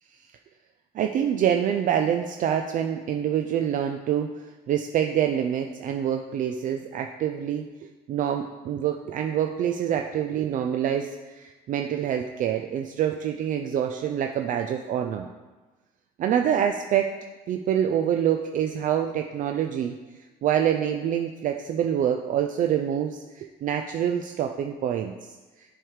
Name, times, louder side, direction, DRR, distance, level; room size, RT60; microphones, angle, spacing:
voice 1, 0.9-7.7 8.1-15.3 16.2-17.2 17.5-20.0 20.4-25.1, right 9 dB, 50° right, 4 dB, 0.4 m, -26 dB
7.5 x 3.2 x 4.9 m, 1.2 s
cardioid pair, 110°, 17 cm